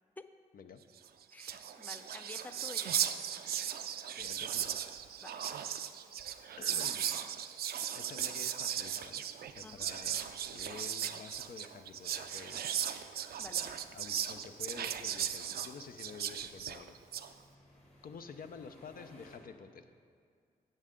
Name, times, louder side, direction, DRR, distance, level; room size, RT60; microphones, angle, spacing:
Whispering, 1.1-1.2 1.3-17.3, right 9 dB, 70° right, 0.4 m, -37 dB
voice 1, 1.3-3.0 5.2-5.5 9.6-9.9 13.4-13.8 14.7-14.9, left 3 dB, 10° left, 10 dB, 0.4 m, -50 dB
voice 2, 4.2-4.7 6.6-7.1 7.4-12.6 13.9-16.9 18.0-19.9, left 5 dB, 65° left, 8 dB, 0.5 m, -50 dB
sound 1, 11.8-19.4, left 1 dB, 40° left, 1.9 m, -63 dB
10.5 x 6.6 x 3.7 m, 2.2 s
cardioid pair, 60°, 16 cm